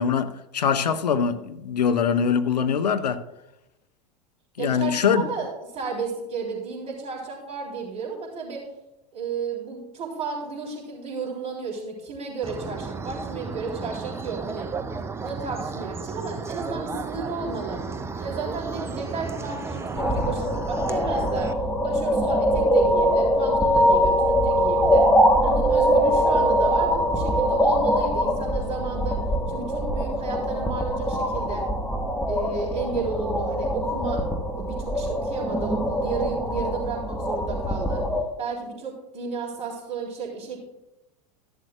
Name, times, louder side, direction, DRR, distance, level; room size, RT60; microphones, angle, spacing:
voice 1, 0.0-3.2 4.6-5.2, left 7 dB, 75° left, 0.7 m, -23 dB
voice 2, 4.6-8.6 9.1-14.7 15.2-17.8 18.2-21.5 21.8-25.0 25.4-29.2 29.5-31.6 32.2-34.2 34.5-38.0 38.4-40.6, right 4 dB, 30° right, 3.3 m, -33 dB
sound 1, 12.4-21.5, right 4 dB, 10° right, 0.5 m, -33 dB
sound 2, 20.0-38.2, equal, 5° left, 1.2 m, -23 dB
13.0 x 11.0 x 2.3 m
figure-of-eight pair, 85°, 21 cm